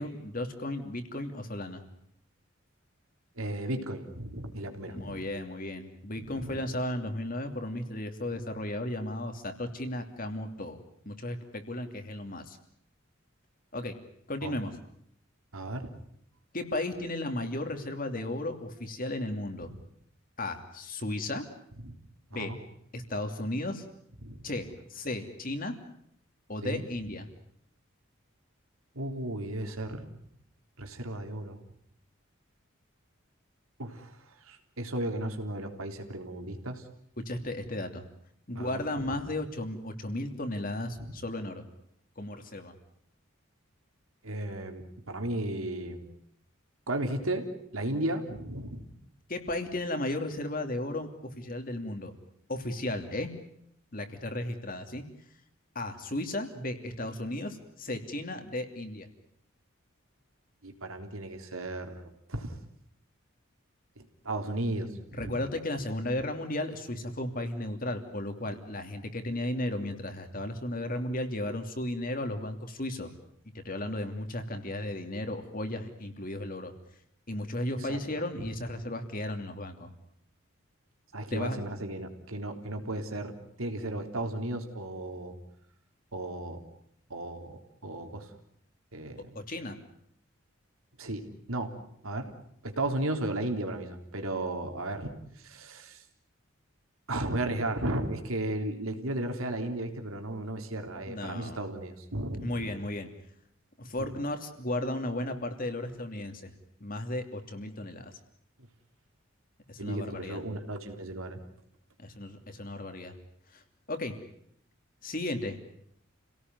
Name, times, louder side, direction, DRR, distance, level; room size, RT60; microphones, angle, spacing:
voice 1, 0.0-1.8 4.9-10.8 11.0-12.6 13.7-13.9 14.3-14.8 16.5-19.7 20.4-21.5 22.3-22.5 22.9-23.8 24.4-25.7 26.5-27.3 37.3-38.0 38.5-41.6 42.2-42.7 49.3-52.1 52.5-53.3 53.9-55.0 55.7-59.1 65.1-73.1 73.6-76.7 77.3-79.9 81.3-81.6 89.3-89.8 101.1-101.6 102.4-103.1 103.8-106.5 106.8-108.1 109.7-110.4 112.0-113.1 113.5-113.6 113.9-114.2 115.0-115.6, left 1 dB, 40° left, 6 dB, 2.9 m, -35 dB
voice 2, 3.4-5.2 6.2-6.6 14.4-14.5 15.5-15.9 21.8-21.9 22.3-22.6 24.2-24.4 26.6-26.8 29.0-30.0 30.8-31.6 33.8-34.1 34.5-36.8 38.5-39.2 41.0-41.1 44.2-46.0 46.9-48.9 60.6-62.6 64.0-65.4 77.9-78.0 78.4-78.5 81.1-85.4 86.1-86.6 87.1-88.3 88.9-89.4 91.0-91.8 92.0-92.3 92.6-96.0 97.1-102.7 104.0-104.1 109.8-111.4, right 1 dB, 85° right, 5 dB, 3.6 m, -35 dB
29.5 x 18.0 x 9.5 m, 0.70 s
head